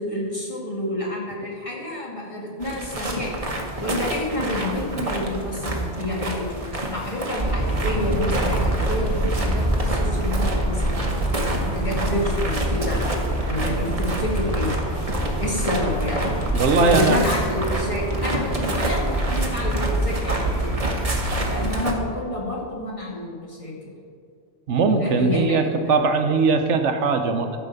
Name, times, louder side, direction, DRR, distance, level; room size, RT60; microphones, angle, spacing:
voice 1, 0.0-3.3 3.8-13.0 13.4-14.7 15.4-16.3 16.7-20.9 21.4-23.9 24.8-25.9, left 1 dB, 25° left, -4 dB, 2.2 m, -29 dB
sound 1, 2.6-21.9, right 1 dB, 30° right, 1.2 m, -29 dB
sound 2, 7.4-21.7, right 1 dB, 5° left, 2.2 m, -25 dB
voice 2, 16.5-17.2 24.7-27.5, right 4 dB, 80° right, 7 dB, 1.1 m, -20 dB
13.0 x 4.9 x 6.8 m, 2.3 s
omnidirectional pair, 1.2 m